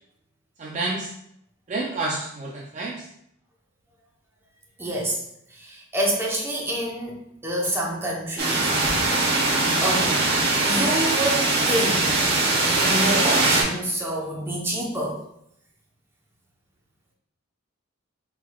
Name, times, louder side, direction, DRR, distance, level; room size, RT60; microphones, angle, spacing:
voice 1, 0.6-1.1 1.7-3.1, right 2 dB, 35° right, -2 dB, 0.4 m, -29 dB
voice 2, 4.8-5.2 5.6-8.7 9.8-10.2 10.7-12.2 12.6-15.2, right 1 dB, 10° right, -3 dB, 0.8 m, -27 dB
sound 1, 8.4-13.6, right 2 dB, 50° right, 1.0 m, -21 dB
4.5 x 3.8 x 2.3 m, 0.75 s
head